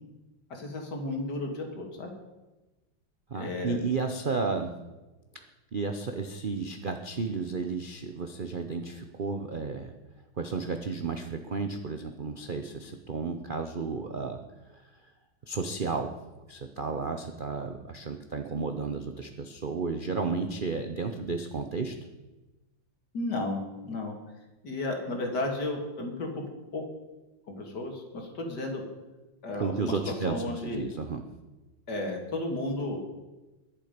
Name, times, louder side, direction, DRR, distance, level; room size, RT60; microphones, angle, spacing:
voice 1, 0.5-2.1 3.3-3.8 23.1-24.1 24.6-26.4 26.7-26.8 27.5-28.8 29.4-29.9 30.3-30.8 31.9-33.0, left 2 dB, 55° left, 2 dB, 2.7 m, -33 dB
voice 2, 3.3-4.7 5.7-9.9 10.4-14.4 14.7-14.8 15.5-16.2 16.5-21.9 29.6-31.2, right 4 dB, 65° right, 6 dB, 0.5 m, -32 dB
22.5 x 7.5 x 5.1 m, 1.1 s
omnidirectional pair, 2.2 m